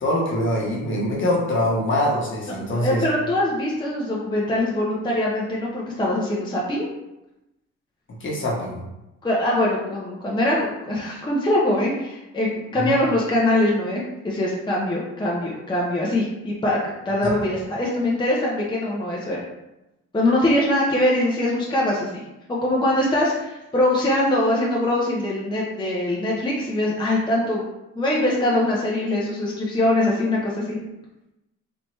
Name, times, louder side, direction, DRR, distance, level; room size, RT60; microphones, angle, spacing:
voice 1, 0.0-3.1 8.1-8.8 12.7-13.0 17.2-17.5, left 1 dB, 40° left, -3 dB, 1.1 m, -24 dB
voice 2, 2.8-6.9 9.2-16.8 17.0-19.4 20.1-22.2 22.5-27.6 28.0-30.8, left 1 dB, 15° left, -4 dB, 0.7 m, -22 dB
3.4 x 2.9 x 3.0 m, 0.95 s
cardioid pair, 90°, 30 cm